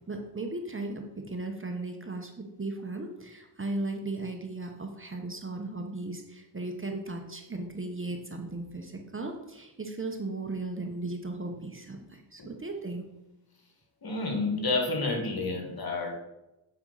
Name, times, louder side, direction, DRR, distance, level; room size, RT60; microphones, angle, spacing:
voice 1, 0.1-13.1, right 2 dB, 25° right, 3 dB, 1.0 m, -36 dB
voice 2, 14.0-16.2, left 3 dB, 45° left, 2 dB, 1.9 m, -30 dB
7.6 x 4.4 x 4.0 m, 0.95 s
cardioid pair, 50°, 49 cm